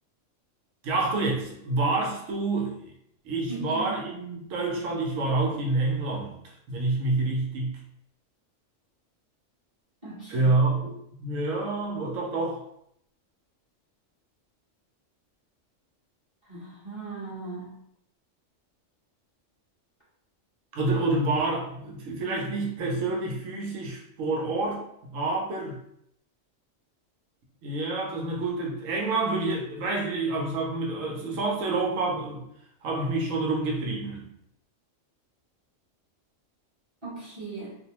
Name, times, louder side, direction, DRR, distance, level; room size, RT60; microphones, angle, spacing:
voice 1, 0.8-2.7 3.2-6.4 6.7-7.8 10.3-10.9 11.2-12.6 20.7-24.8 25.1-25.8 27.6-32.4 32.8-34.2, right 2 dB, 85° right, -1 dB, 1.1 m, -28 dB
voice 2, 3.5-3.9 10.0-10.5 16.5-17.8 37.0-37.8, right 3 dB, 25° right, -8 dB, 0.8 m, -38 dB
2.6 x 2.0 x 2.8 m, 0.74 s
omnidirectional pair, 1.3 m